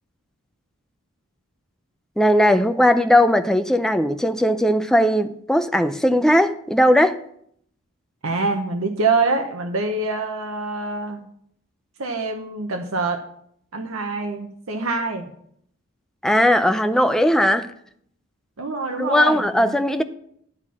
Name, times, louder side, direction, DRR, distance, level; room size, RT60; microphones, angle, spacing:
voice 1, 2.2-7.2 16.2-17.7 19.0-20.0, equal, 5° left, 0.4 m, -18 dB
voice 2, 8.2-11.2 12.0-13.2 13.7-15.3 18.6-19.8, right 3 dB, 80° right, 0.9 m, -25 dB
10.5 x 4.3 x 7.3 m
head